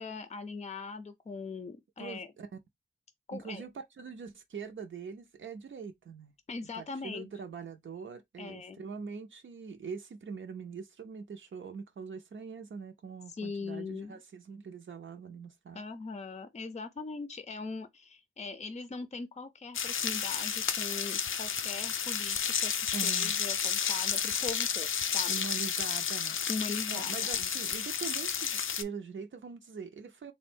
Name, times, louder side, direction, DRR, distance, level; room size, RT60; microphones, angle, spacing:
voice 1, 0.0-2.3 3.3-3.6 6.5-7.3 8.4-8.8 13.3-14.2 15.7-25.3 26.5-27.5, left 4 dB, 35° left, 0.5 m, -41 dB
voice 2, 2.0-2.5 3.3-6.3 6.7-15.8 22.9-23.3 25.3-26.4 26.9-30.3, right 6 dB, 80° right, 0.6 m, -43 dB
sound 1, 19.7-28.8, left 7 dB, 85° left, 0.4 m, -31 dB
3.7 x 2.2 x 4.2 m
wide cardioid pair, 110°, 20 cm